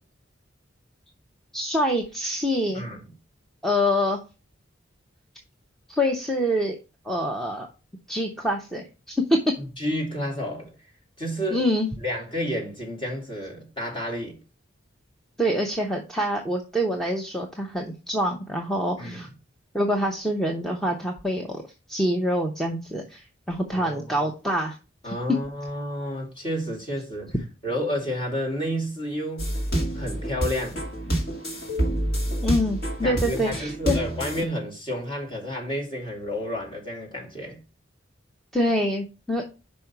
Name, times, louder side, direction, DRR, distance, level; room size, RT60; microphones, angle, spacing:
voice 1, 1.5-2.8 3.6-4.2 5.9-6.8 7.0-7.7 8.1-9.4 11.5-11.9 15.4-19.3 19.7-21.6 21.9-24.8 25.0-25.1 32.4-34.0 38.5-39.4, equal, ahead, 0.8 m, -25 dB
voice 2, 9.8-10.7 11.2-11.6 12.0-14.4 19.0-19.3 23.7-24.3 25.0-27.3 27.6-29.5 29.9-30.8 33.0-37.6, equal, 25° left, 2.6 m, -30 dB
sound 1, 29.4-34.4, right 1 dB, 50° left, 2.2 m, -28 dB
5.3 x 5.3 x 5.8 m
head